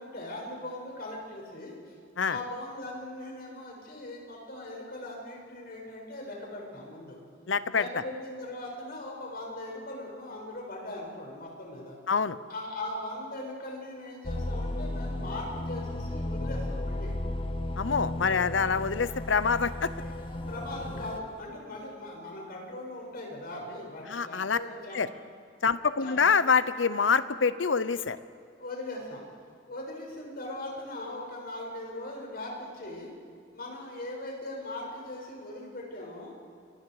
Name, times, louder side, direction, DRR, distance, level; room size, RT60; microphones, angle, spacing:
voice 1, 0.0-1.9 2.3-7.2 7.7-12.0 12.5-17.1 19.6-25.2 26.0-26.2 28.6-29.2 29.7-33.1 33.5-36.3, left 1 dB, 55° left, -1 dB, 6.9 m, -40 dB
voice 2, 7.5-7.8 12.1-12.4 17.8-19.9 24.1-24.6 24.9-25.1 25.6-28.2, left 5 dB, 75° left, 14 dB, 0.9 m, -26 dB
sound 1, 14.2-21.2, left 1 dB, 30° left, 0.9 m, -34 dB
29.0 x 22.5 x 5.0 m, 2.4 s
head